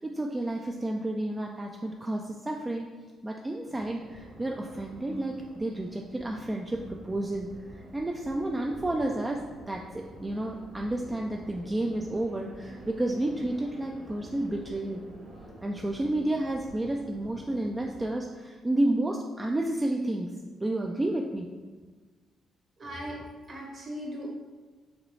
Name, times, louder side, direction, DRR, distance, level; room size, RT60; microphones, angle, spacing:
voice 1, 0.0-2.9 3.2-15.0 15.6-21.5, right 1 dB, 20° right, 1 dB, 0.3 m, -31 dB
sound 1, 3.7-18.1, right 1 dB, 80° right, 1.3 m, -48 dB
voice 2, 22.8-23.1 23.5-24.3, equal, 50° right, -3 dB, 1.5 m, -38 dB
5.0 x 3.0 x 3.2 m, 1.4 s
cardioid pair, 90°, 0 cm